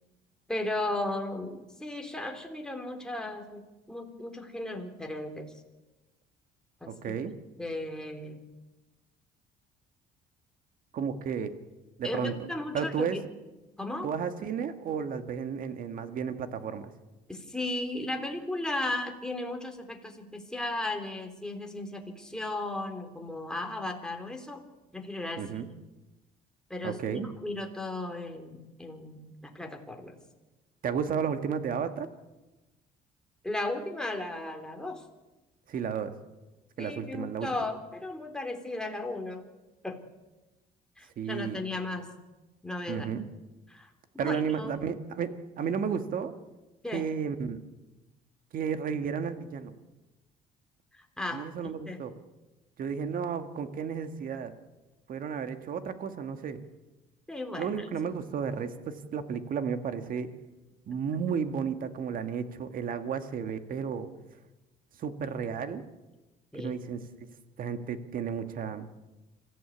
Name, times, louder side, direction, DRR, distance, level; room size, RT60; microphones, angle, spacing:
voice 1, 0.5-5.5 6.8-8.4 12.0-13.2 13.8-14.1 17.3-24.6 24.9-25.6 26.7-30.2 33.4-35.0 36.8-39.5 39.8-40.0 41.0-42.1 42.6-43.1 43.7-44.7 46.8-47.1 50.9-52.0 57.3-57.9 66.5-66.8, left 2 dB, 5° left, 3 dB, 3.6 m, -36 dB
voice 2, 6.9-7.3 10.9-11.5 12.0-12.3 12.7-13.2 14.0-16.9 25.4-25.7 26.8-27.3 30.8-32.1 35.7-36.1 36.8-37.5 41.2-41.6 42.9-43.3 44.2-45.3 45.6-46.3 46.9-47.6 48.5-49.7 51.3-52.1 52.8-54.5 55.1-56.6 57.6-60.3 60.9-64.1 65.0-65.8 66.5-67.3 67.6-68.9, right 7 dB, 55° right, 9 dB, 1.9 m, -33 dB
26.0 x 15.5 x 8.6 m, 1.1 s
cardioid pair, 110°, 17 cm